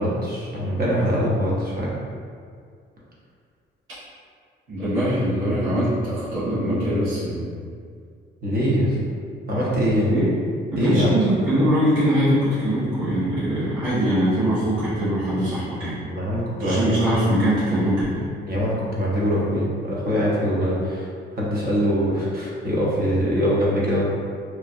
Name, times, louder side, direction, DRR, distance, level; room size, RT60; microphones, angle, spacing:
voice 1, 0.0-1.9 8.4-9.0 9.5-10.1 10.8-11.2 16.1-17.3 18.4-21.1 21.4-24.0, equal, 50° right, -6 dB, 0.9 m, -23 dB
voice 2, 4.7-7.5 10.0-10.4 10.7-16.0 16.6-18.3, equal, 85° right, -13 dB, 1.5 m, -22 dB
3.0 x 2.3 x 2.6 m, 2.2 s
cardioid pair, 90°, 20 cm